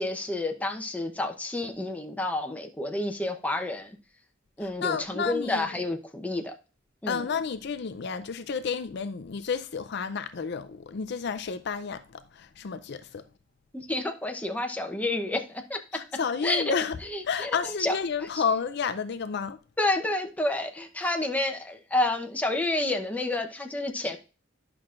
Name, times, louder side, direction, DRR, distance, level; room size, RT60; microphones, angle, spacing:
voice 1, 0.0-4.0 4.6-6.5 7.0-7.3 13.7-16.0 16.4-16.8 17.1-18.0 18.3-18.4 19.8-24.2, left 2 dB, 10° left, 0.8 m, -29 dB
voice 2, 4.6-5.9 7.1-13.2 15.9-19.6 21.0-21.1, left 6 dB, 60° left, 0.5 m, -31 dB
10.5 x 5.9 x 2.5 m
head